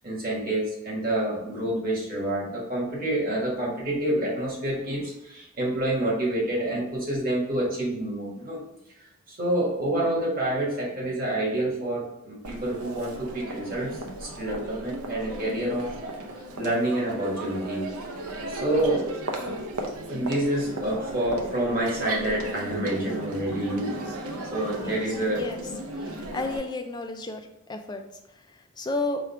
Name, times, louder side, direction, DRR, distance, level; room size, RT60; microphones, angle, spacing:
voice 1, 0.0-8.6 9.3-15.9 16.3-17.9 18.5-19.1 20.1-24.2 24.5-25.4, right 1 dB, 40° right, -5 dB, 1.5 m, -28 dB
Crowd, 12.4-26.6, right 1 dB, 90° right, 0.7 m, -36 dB
voice 2, 26.3-27.4 27.7-28.0 28.8-29.2, left 2 dB, 20° left, 5 dB, 0.4 m, -31 dB
4.9 x 2.3 x 4.4 m, 0.85 s
head